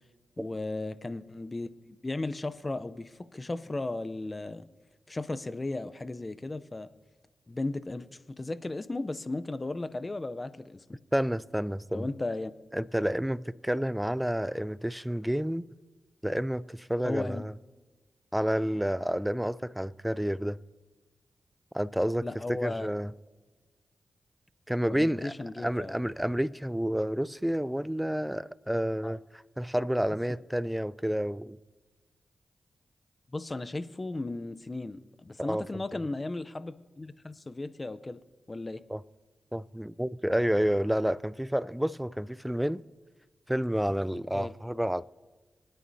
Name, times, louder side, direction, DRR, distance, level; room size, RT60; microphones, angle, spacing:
voice 1, 0.4-4.6 5.1-6.9 7.5-11.0 11.9-12.5 17.0-17.4 22.2-22.9 24.8-25.9 29.0-29.1 33.3-38.2 38.5-38.8 44.3-44.5, left 2 dB, 30° left, 0.6 m, -35 dB
voice 2, 11.1-12.1 12.7-15.6 16.2-17.5 18.3-20.6 21.7-23.1 24.7-31.6 35.4-35.8 38.9-39.0 39.5-42.8 43.5-45.0, equal, 5° right, 0.3 m, -30 dB
26.5 x 9.2 x 2.8 m
cardioid pair, 55°, 0 cm